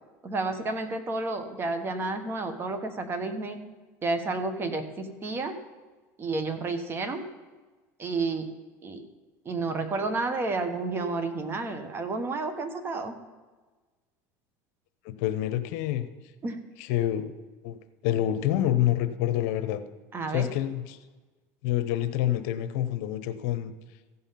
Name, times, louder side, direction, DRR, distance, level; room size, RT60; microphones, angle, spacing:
voice 1, 0.2-3.6 4.0-5.6 6.2-7.3 8.0-8.5 8.8-9.0 9.4-13.1 16.4-16.6 20.1-20.5, right 3 dB, 30° right, 8 dB, 1.3 m, -31 dB
voice 2, 15.0-16.1 16.8-17.3 17.6-17.8 18.0-19.8 20.3-21.0 21.6-23.7, left 12 dB, 75° left, 10 dB, 0.8 m, -27 dB
15.0 x 5.6 x 5.8 m, 1.3 s
supercardioid pair, 125°, 8 cm